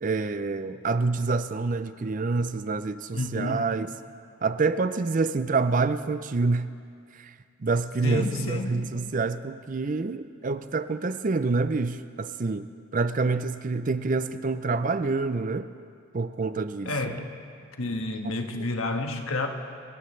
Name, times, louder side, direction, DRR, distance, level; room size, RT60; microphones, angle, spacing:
voice 1, 0.0-3.9 4.4-6.7 7.1-7.3 7.6-15.7 16.1-16.9, right 3 dB, 40° right, 12 dB, 0.4 m, -27 dB
voice 2, 3.1-3.6 8.0-8.8 16.8-17.2 17.8-19.5, left 2 dB, 75° left, 4 dB, 1.4 m, -30 dB
28.0 x 14.5 x 3.3 m, 2.3 s
head